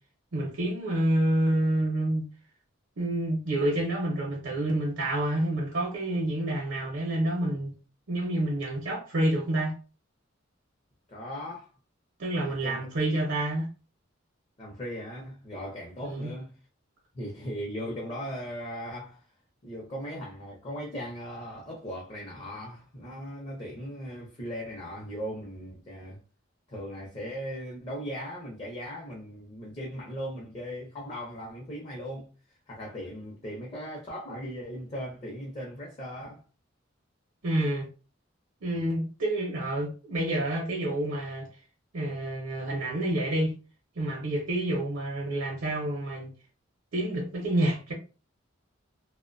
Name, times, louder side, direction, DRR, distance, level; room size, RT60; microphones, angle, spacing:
voice 1, 0.3-2.2 3.0-7.7 8.1-9.7 12.2-13.7 16.0-16.3 37.4-37.9 38.6-41.5 41.9-43.5 44.0-46.3 46.9-47.9, right 1 dB, 70° right, 0.6 m, -28 dB
voice 2, 11.1-11.7 12.5-12.9 14.6-16.5 17.1-19.3 19.6-26.2 26.7-32.3 32.7-36.4 38.7-38.9, equal, 30° left, 0.6 m, -38 dB
2.5 x 2.1 x 2.5 m
head